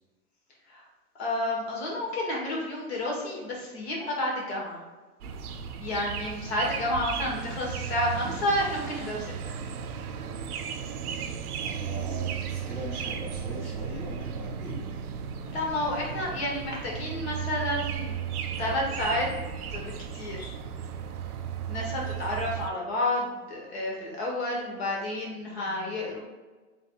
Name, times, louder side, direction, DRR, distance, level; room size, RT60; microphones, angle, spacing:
voice 1, 1.2-4.8 5.8-9.5 15.5-18.1 18.6-19.3 19.7-20.5 21.7-26.2, left 1 dB, 45° left, -2 dB, 1.4 m, -30 dB
sound 1, 5.2-22.7, right 7 dB, 80° right, 0.6 m, -35 dB
voice 2, 11.6-14.8 25.6-25.9, equal, 10° left, -7 dB, 0.5 m, -40 dB
4.7 x 3.6 x 2.3 m, 1.3 s
hypercardioid pair, 160°, 44 cm